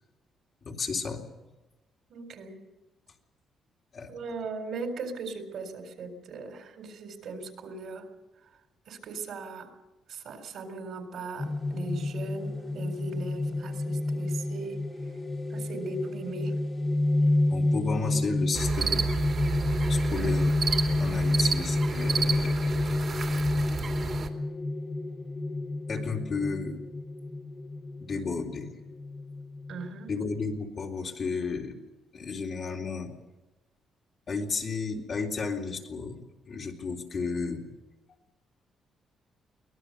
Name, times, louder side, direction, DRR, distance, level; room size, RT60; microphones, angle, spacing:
voice 1, 0.6-1.3 3.9-4.1 17.5-19.0 19.9-20.6 21.0-23.0 25.9-26.8 28.1-28.7 30.1-31.8 32.1-33.1 34.3-36.2 36.5-37.6, left 4 dB, 50° left, -1 dB, 3.6 m, -33 dB
voice 2, 2.1-2.6 4.1-8.1 8.9-9.7 10.1-14.8 15.5-16.5 17.1-17.2 29.7-30.1, right 3 dB, 70° right, 5 dB, 4.1 m, -39 dB
sound 1, 11.4-30.6, left 2 dB, 25° left, 1.9 m, -29 dB
sound 2, 18.5-24.3, right 6 dB, 50° right, 2.6 m, -31 dB
23.5 x 18.5 x 6.8 m, 1.1 s
cardioid pair, 90°, 0 cm